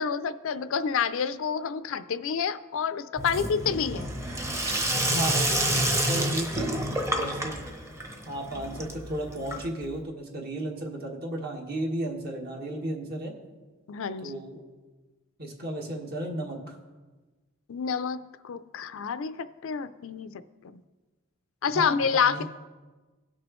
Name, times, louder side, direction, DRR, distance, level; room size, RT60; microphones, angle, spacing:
voice 1, 0.0-4.1 13.9-14.4 17.7-20.3 20.7-20.8 21.6-22.4, left 6 dB, 70° left, 13 dB, 0.4 m, -28 dB
Sink (filling or washing), 3.2-10.0, right 1 dB, 15° right, 0.9 m, -29 dB
voice 2, 5.1-7.6 8.3-13.3 14.2-14.6 15.4-16.8 21.7-22.4, right 1 dB, 50° right, 0 dB, 1.6 m, -34 dB
18.0 x 6.1 x 3.1 m, 1.3 s
head